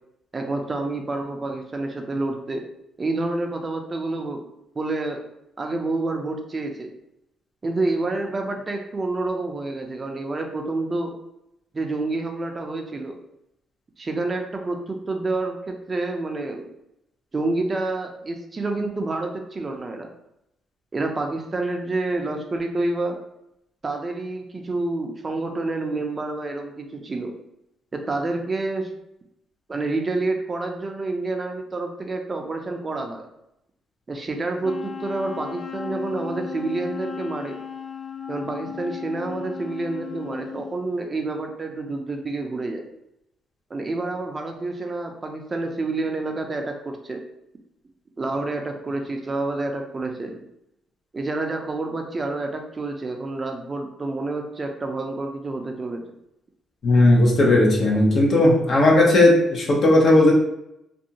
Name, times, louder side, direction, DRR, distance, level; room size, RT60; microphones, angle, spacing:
voice 1, 0.3-2.7 3.0-4.4 4.7-5.2 5.6-6.9 7.6-11.1 11.7-13.2 14.0-16.7 17.3-20.1 20.9-23.2 23.8-27.3 27.9-28.9 29.7-33.3 34.1-37.6 38.3-42.8 43.7-47.2 48.2-50.4 51.1-56.0, right 2 dB, 30° right, 3 dB, 0.4 m, -28 dB
Wind instrument woodwind instrument, 34.6-40.8, left 7 dB, 35° left, 0.3 m, -35 dB
voice 2, 56.8-60.3, left 1 dB, 55° left, -2 dB, 0.8 m, -16 dB
2.6 x 2.3 x 2.8 m, 0.82 s
cardioid pair, 90°, 0 cm